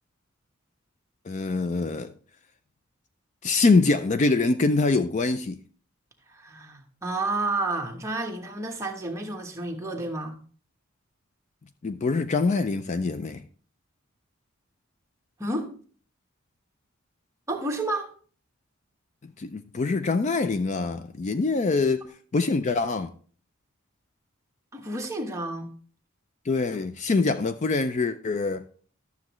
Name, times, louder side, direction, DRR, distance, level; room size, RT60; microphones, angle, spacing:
voice 1, 1.3-2.1 3.4-5.6 11.8-13.4 19.4-22.0 22.3-23.1 26.5-28.6, left 3 dB, 35° left, 0.4 m, -24 dB
voice 2, 6.3-10.4 15.4-15.7 17.5-18.1 24.7-25.7, right 2 dB, 15° right, 1.2 m, -30 dB
12.0 x 7.0 x 3.1 m
head